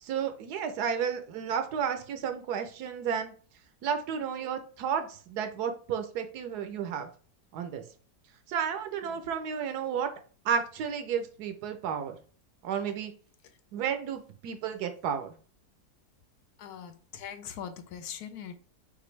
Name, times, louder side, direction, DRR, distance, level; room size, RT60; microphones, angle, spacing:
voice 1, 0.0-3.3 3.8-7.1 7.5-7.8 8.5-10.1 10.4-12.2 12.6-13.1 13.7-15.4, right 7 dB, 80° right, 8 dB, 1.2 m, -32 dB
voice 2, 16.6-18.5, left 8 dB, 75° left, 9 dB, 1.1 m, -41 dB
6.0 x 2.6 x 3.2 m, 0.41 s
omnidirectional pair, 1.7 m